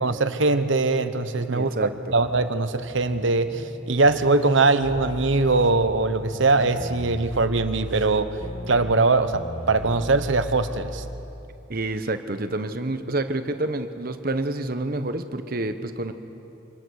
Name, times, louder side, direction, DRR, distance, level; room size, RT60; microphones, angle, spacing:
voice 1, 0.0-1.7 2.1-8.3 8.7-11.0, right 3 dB, 70° right, 10 dB, 1.0 m, -21 dB
voice 2, 1.5-2.2 11.7-16.1, right 2 dB, 45° right, 9 dB, 1.0 m, -28 dB
sound 1, 1.8-6.9, equal, 55° left, 5.2 m, -45 dB
sound 2, 4.8-11.2, left 1 dB, 30° left, 1.6 m, -37 dB
25.0 x 19.0 x 6.5 m, 2.8 s
head